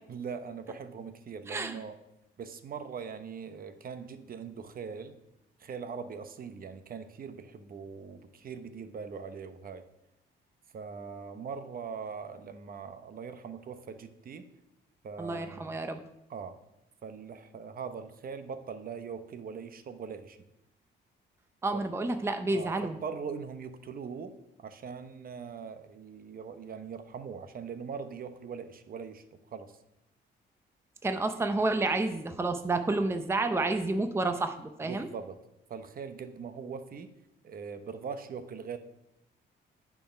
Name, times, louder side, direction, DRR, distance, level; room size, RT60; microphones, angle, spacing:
voice 1, 0.1-1.9 2.4-5.1 5.6-9.8 10.7-14.5 15.0-15.8 16.3-16.6 17.0-20.4 22.5-29.2 29.5-29.7 34.8-35.4 35.7-37.1 37.4-38.8, right 6 dB, 45° right, 10 dB, 0.8 m, -41 dB
voice 2, 1.5-1.8 15.2-16.0 21.6-23.0 31.0-35.1, right 2 dB, 15° right, 7 dB, 0.6 m, -30 dB
8.9 x 4.6 x 5.7 m, 0.85 s
cardioid pair, 90°, 20 cm